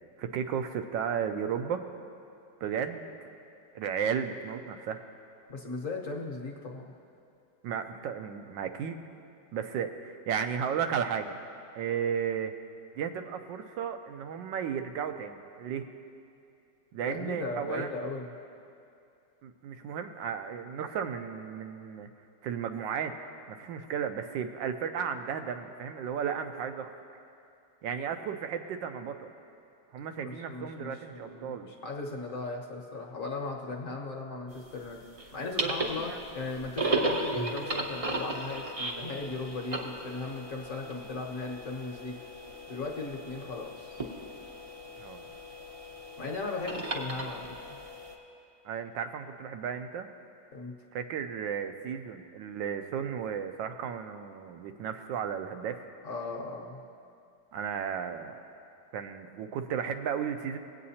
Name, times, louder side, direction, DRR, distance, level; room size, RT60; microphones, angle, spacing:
voice 1, 0.2-1.8 2.6-3.1 3.7-5.0 7.6-9.0 9.5-11.4 11.8-12.5 12.9-15.8 16.9-17.9 19.4-22.1 22.4-23.1 23.5-26.9 27.8-29.3 29.9-31.7 35.6-35.7 36.0-36.2 45.0-45.3 48.6-50.1 50.9-55.9 57.5-58.4 58.9-60.6, right 7 dB, 90° right, 7 dB, 1.3 m, -34 dB
voice 2, 5.5-6.9 17.0-18.3 30.2-35.0 35.3-42.2 42.7-44.0 46.2-47.5 50.5-50.7 56.0-56.8, left 3 dB, 50° left, 0 dB, 1.2 m, -37 dB
sound 1, 34.6-48.1, right 2 dB, 45° right, 0.4 m, -36 dB
20.0 x 8.5 x 2.8 m, 2.6 s
omnidirectional pair, 2.0 m